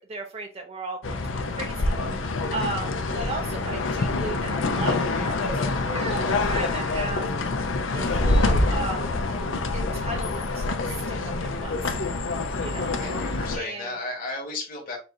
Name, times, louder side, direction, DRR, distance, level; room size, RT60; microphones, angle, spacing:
voice 1, 0.1-1.2 1.5-2.0 2.5-5.5 5.8-7.3 7.9-9.2 9.7-11.7 12.6-12.9 13.5-13.9, right 2 dB, 30° right, 3 dB, 0.5 m, -35 dB
sound 1, 1.0-13.6, left 3 dB, 80° left, 0.6 m, -26 dB
voice 2, 13.0-15.0, left 2 dB, 45° left, -2 dB, 1.5 m, -34 dB
4.6 x 2.6 x 3.7 m, 0.33 s
head